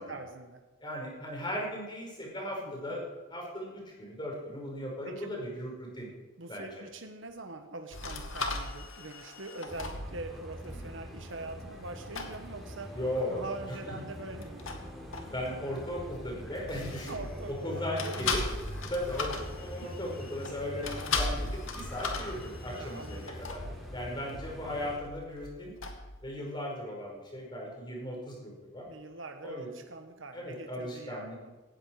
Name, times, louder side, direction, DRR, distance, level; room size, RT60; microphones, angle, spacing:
voice 1, 0.0-0.6 2.6-3.0 5.0-5.4 6.4-13.0 13.3-14.7 17.1-18.5 19.8-20.1 22.7-23.4 28.9-31.5, right 2 dB, 70° right, 5 dB, 1.3 m, -43 dB
voice 2, 0.8-3.0 3.3-6.1 6.5-6.7 10.7-11.0 12.9-13.5 15.3-18.4 18.9-23.6 23.9-25.8 26.2-28.9 29.4-29.7 30.3-31.4, left 1 dB, 25° left, -1 dB, 5.7 m, -37 dB
sound 1, 7.9-11.9 12.1-12.4 14.3-17.6 18.0-26.2, left 3 dB, 90° left, 2.3 m, -38 dB
sound 2, 9.7-25.0, equal, ahead, 3.8 m, -44 dB
18.0 x 15.0 x 4.9 m, 1.2 s
head